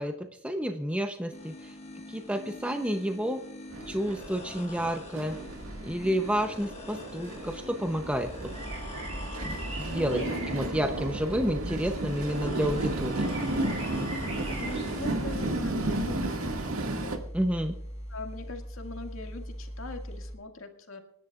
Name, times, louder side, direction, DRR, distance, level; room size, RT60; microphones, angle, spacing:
voice 1, 0.0-1.8 2.1-3.4 3.9-5.4 5.8-8.5 9.4-13.3 17.3-17.7, equal, 5° right, 5 dB, 0.7 m, -30 dB
sound 1, 1.3-20.3, left 1 dB, 30° left, 1.4 m, -44 dB
Train, 3.7-17.2, right 2 dB, 80° right, 1.9 m, -34 dB
sound 2, 8.0-16.7, right 1 dB, 30° right, 6.2 m, -40 dB
voice 2, 10.1-10.5 14.5-16.6 16.9-17.2 18.1-21.0, left 2 dB, 70° left, 4 dB, 2.0 m, -41 dB
27.5 x 10.5 x 2.4 m, 0.71 s
head